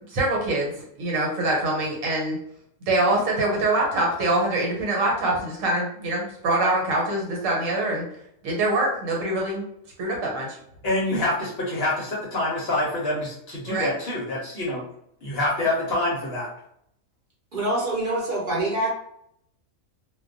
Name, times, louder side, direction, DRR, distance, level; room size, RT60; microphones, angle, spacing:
voice 1, 0.1-2.4 2.9-8.0 8.4-9.6 10.0-10.6 13.7-13.9, right 2 dB, 75° right, -1 dB, 1.1 m, -24 dB
voice 2, 10.8-14.8 15.2-16.5, left 1 dB, 60° left, -4 dB, 0.7 m, -26 dB
voice 3, 17.5-18.9, right 1 dB, 45° right, -5 dB, 0.8 m, -25 dB
2.2 x 2.2 x 2.5 m, 0.72 s
omnidirectional pair, 1.4 m